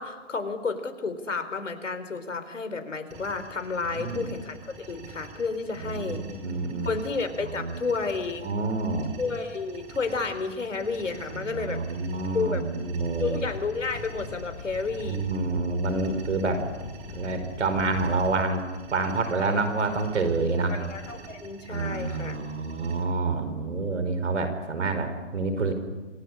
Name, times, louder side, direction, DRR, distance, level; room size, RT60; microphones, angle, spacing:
voice 1, 0.0-6.2 6.8-8.5 9.2-11.8 12.3-12.7 13.2-15.3 20.5-22.4, left 4 dB, 80° left, 9 dB, 4.2 m, -31 dB
sound 1, 3.1-23.0, right 4 dB, 20° right, 5.6 m, -47 dB
voice 2, 3.8-4.3 5.8-7.0 7.4-7.8 8.4-9.1 11.3-13.4 15.0-16.6 17.1-20.7 21.7-25.7, right 3 dB, 70° right, 8 dB, 5.0 m, -28 dB
sound 2, 12.9-18.4, left 5 dB, 50° left, 5.1 m, -42 dB
27.5 x 19.0 x 10.0 m, 1.2 s
hypercardioid pair, 140°, 37 cm